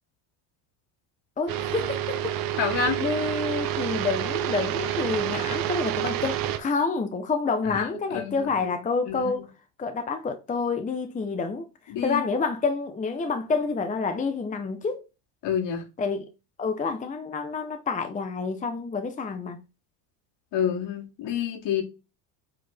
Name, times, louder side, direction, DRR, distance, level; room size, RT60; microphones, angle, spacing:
voice 1, 1.4-2.4 3.0-9.5 9.8-11.7 12.0-15.0 16.0-16.3 16.6-19.6, left 4 dB, 15° left, 0.8 m, -28 dB
sound 1, 1.5-6.6, right 11 dB, 45° right, 1.0 m, -28 dB
voice 2, 2.6-3.0 7.7-8.7 9.1-9.3 11.9-12.2 15.4-15.9 20.5-21.8, left 8 dB, 60° left, 2.4 m, -28 dB
7.9 x 4.0 x 3.5 m
supercardioid pair, 120°, 49 cm